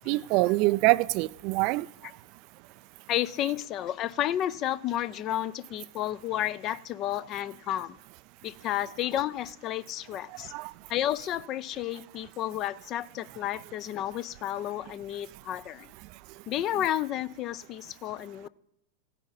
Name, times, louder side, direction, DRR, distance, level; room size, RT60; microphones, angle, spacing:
voice 1, 0.1-1.9 10.5-10.7, right 21 dB, 45° right, 0.3 m, -24 dB
voice 2, 3.1-8.0 8.4-10.5 10.9-15.9 16.5-18.5, left 12 dB, 35° left, 0.5 m, -31 dB
16.0 x 9.7 x 4.1 m
figure-of-eight pair, 95°, 0 cm